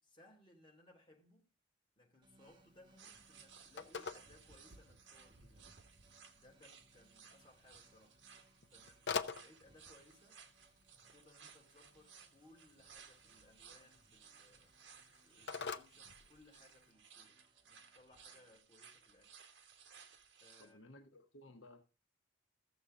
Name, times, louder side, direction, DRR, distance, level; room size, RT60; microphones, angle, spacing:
voice 1, 0.0-1.5 2.0-5.7 6.3-8.2 8.7-10.4 10.9-14.7 15.2-19.4 20.4-20.9, left 1 dB, 25° left, 2.8 m, -65 dB
sound 1, 2.2-18.6, right 2 dB, 25° right, 1.1 m, -73 dB
Telephone, 2.4-16.9, left 5 dB, 65° left, 0.7 m, -49 dB
sound 2, 3.0-20.7, right 6 dB, 75° right, 1.5 m, -61 dB
voice 2, 20.6-21.8, left 1 dB, 80° left, 1.1 m, -58 dB
15.0 x 7.0 x 3.7 m
head